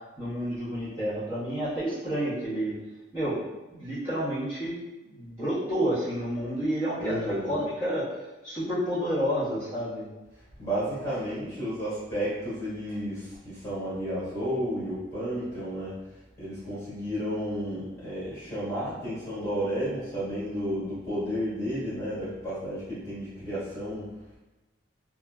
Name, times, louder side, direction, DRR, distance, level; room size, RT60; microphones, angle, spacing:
voice 1, 0.2-2.7 3.1-3.4 3.7-4.7 5.0-8.1 8.4-10.0, equal, 15° right, -16 dB, 1.3 m, -29 dB
voice 2, 7.0-7.5 10.6-15.9 16.4-24.1, equal, 15° left, -11 dB, 1.4 m, -32 dB
2.9 x 2.6 x 2.3 m, 1.1 s
head